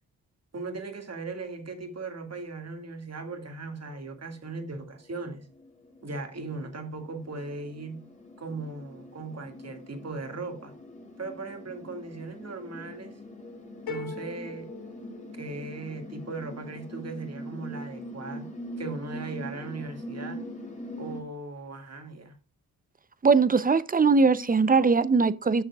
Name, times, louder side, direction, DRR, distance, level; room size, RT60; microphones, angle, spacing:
voice 1, 0.5-5.4 6.0-8.0 8.4-10.7 11.2-13.1 13.9-14.7 15.3-20.4 21.0-22.4, right 3 dB, 45° right, 2.0 m, -38 dB
sound 1, 2.6-2.7 3.1-21.2, equal, 20° left, 2.2 m, -43 dB
sound 2, 13.9-15.9, left 4 dB, 80° left, 2.9 m, -40 dB
voice 2, 23.2-25.6, right 4 dB, 25° right, 0.6 m, -21 dB
11.0 x 6.4 x 2.4 m
cardioid pair, 55°, 36 cm